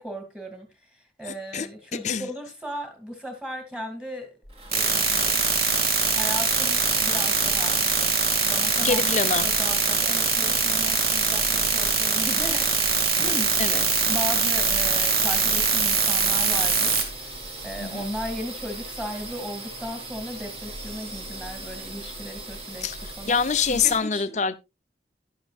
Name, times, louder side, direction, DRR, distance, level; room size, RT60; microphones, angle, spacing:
voice 1, 0.0-4.3 4.7-5.5 6.1-13.5 14.0-23.4 23.7-24.3, equal, 5° right, 2.2 m, -37 dB
voice 2, 1.3-1.7 2.0-2.3 8.8-9.5 13.6-14.1 17.8-18.1 22.8-23.0 23.3-24.6, left 6 dB, 40° left, 0.6 m, -25 dB
sound 1, 4.4-24.0, right 2 dB, 35° right, 2.4 m, -39 dB
sound 2, 4.7-17.0, right 5 dB, 55° right, 2.2 m, -22 dB
11.5 x 11.0 x 2.4 m
head